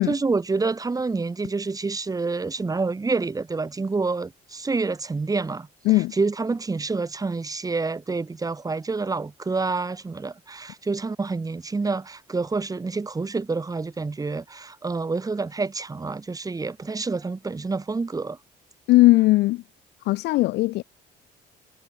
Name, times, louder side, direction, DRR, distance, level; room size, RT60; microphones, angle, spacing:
voice 1, 0.1-5.7 6.1-18.4, right 3 dB, 20° right, 6.3 m, -27 dB
voice 2, 18.9-19.6 20.0-20.8, left 19 dB, 85° left, 3.2 m, -18 dB
cardioid pair, 110°, 17 cm